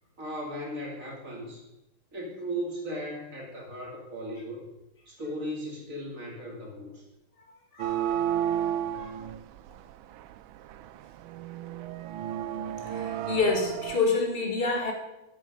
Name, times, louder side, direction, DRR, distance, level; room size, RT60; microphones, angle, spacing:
voice 1, 0.2-1.6 2.1-4.6 5.1-7.0, equal, 40° right, -2 dB, 3.2 m, -37 dB
sound 1, 7.8-14.0, right 10 dB, 80° right, 1.4 m, -32 dB
voice 2, 12.9-14.9, left 4 dB, 25° left, 1 dB, 2.1 m, -27 dB
11.0 x 9.9 x 5.1 m, 0.93 s
omnidirectional pair, 2.2 m